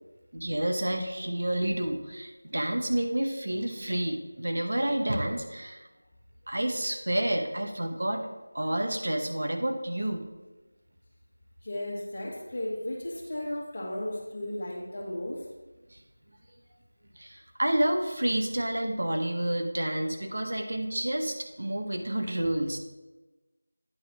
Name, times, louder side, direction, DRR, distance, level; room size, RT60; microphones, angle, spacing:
voice 1, 0.3-5.8 6.5-8.3 8.5-10.3 17.2-22.8, right 1 dB, 60° right, 4 dB, 1.0 m, -29 dB
voice 2, 11.6-15.4, left 1 dB, 40° left, -1 dB, 1.6 m, -35 dB
9.2 x 3.8 x 5.8 m, 1.1 s
figure-of-eight pair, 170°, 0 cm